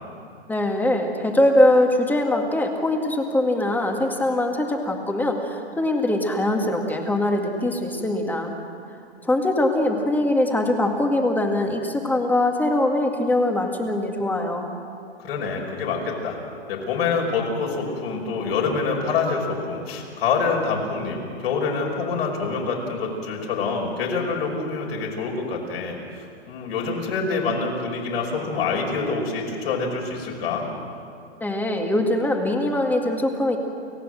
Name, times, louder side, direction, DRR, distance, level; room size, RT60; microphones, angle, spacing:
voice 1, 0.5-8.5 9.2-14.7 31.4-33.6, left 1 dB, 5° left, 3 dB, 2.0 m, -22 dB
voice 2, 15.2-16.4 16.7-30.7, left 4 dB, 60° left, -1 dB, 5.7 m, -26 dB
29.5 x 15.5 x 7.7 m, 2.4 s
hypercardioid pair, 140°, 33 cm